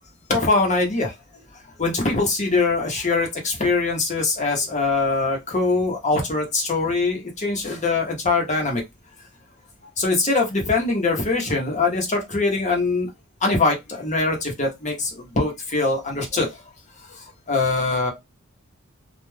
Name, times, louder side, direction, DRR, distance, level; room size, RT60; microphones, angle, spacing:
voice 1, 0.3-1.4 1.8-8.8 10.0-13.1 13.4-16.6 17.0-18.1, left 3 dB, 35° left, 1 dB, 0.9 m, -23 dB
2.3 x 2.2 x 3.2 m, 0.20 s
head